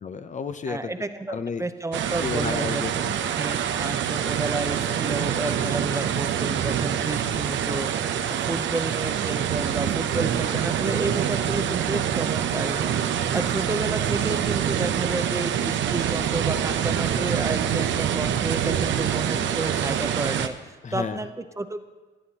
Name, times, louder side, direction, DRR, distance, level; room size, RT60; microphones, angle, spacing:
voice 1, 0.0-0.9 1.3-1.6 2.2-3.6 10.1-10.3 20.8-21.2, left 5 dB, 40° left, 10 dB, 0.6 m, -32 dB
voice 2, 0.7-2.8 3.3-21.8, right 2 dB, 15° right, 9 dB, 0.6 m, -31 dB
sound 1, 1.9-20.5, right 9 dB, 70° right, 0.7 m, -25 dB
15.5 x 9.5 x 2.9 m, 1.3 s
cardioid pair, 90°, 20 cm